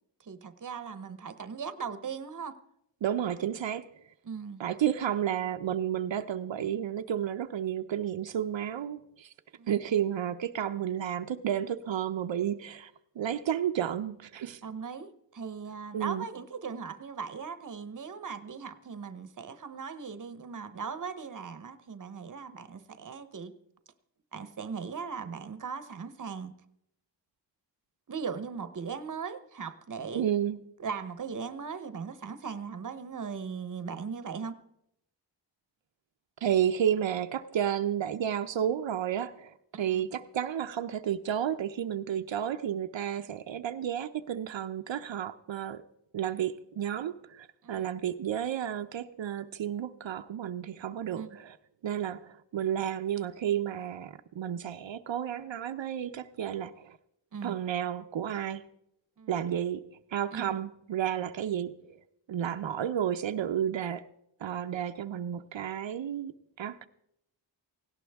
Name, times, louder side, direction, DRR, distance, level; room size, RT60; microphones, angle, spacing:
voice 1, 0.2-2.6 4.2-4.6 9.6-9.7 14.6-23.5 24.3-26.6 28.1-30.3 30.8-34.6 39.7-40.0 47.6-47.9 51.1-51.4 57.3-57.6 59.2-59.4 60.3-60.6, right 6 dB, 45° right, 12 dB, 0.9 m, -39 dB
voice 2, 3.0-3.8 4.6-9.3 9.7-12.9 13.2-14.6 15.9-16.3 30.1-30.6 36.4-45.8 46.1-51.6 51.8-57.0 57.4-58.6 59.3-59.8 60.1-61.7 62.3-64.0 64.4-66.3 66.6-66.9, right 10 dB, 80° right, 7 dB, 0.7 m, -31 dB
18.0 x 17.0 x 3.5 m, 0.78 s
wide cardioid pair, 145°, 45 cm